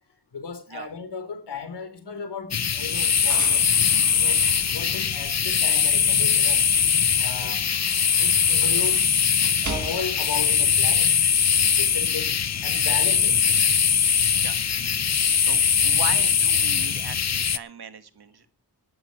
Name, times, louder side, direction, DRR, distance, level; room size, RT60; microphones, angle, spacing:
voice 1, 0.3-3.6 4.1-4.4 4.7-6.6 7.1-7.6 8.2-9.1 9.6-11.2 11.8-12.3 12.6-13.6, left 5 dB, 80° left, 3.6 m, -35 dB
sound 1, 2.5-17.6, left 7 dB, 40° left, 0.7 m, -21 dB
sound 2, 2.8-6.0 6.4-10.3, right 5 dB, 45° right, 1.5 m, -41 dB
voice 2, 14.3-18.5, right 6 dB, 65° right, 1.5 m, -39 dB
19.0 x 12.5 x 3.0 m
wide cardioid pair, 90°, 40 cm